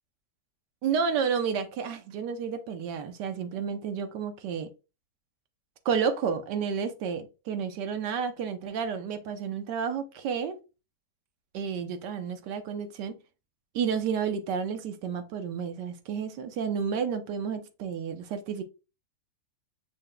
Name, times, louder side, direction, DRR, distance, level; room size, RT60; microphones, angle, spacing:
voice 1, 0.8-4.7 5.8-10.6 11.5-13.2 13.7-18.6, right 6 dB, 80° right, 1.4 m, -31 dB
6.3 x 2.2 x 3.7 m
omnidirectional pair, 1.8 m